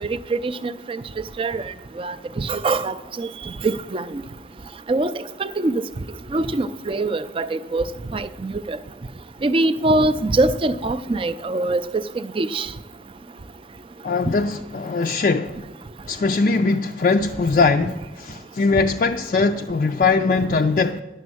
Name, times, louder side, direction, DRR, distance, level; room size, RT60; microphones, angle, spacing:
voice 1, 0.0-1.0 1.4-1.7 2.0-3.3 3.6-4.1 4.9-5.1 5.4-5.8 6.3-7.8 8.1-8.8 9.4-12.0 12.4-12.7, right 2 dB, 30° right, 0.4 m, -23 dB
voice 2, 14.0-15.6 16.1-21.0, left 4 dB, 45° left, 0.3 m, -21 dB
10.5 x 7.1 x 7.7 m
head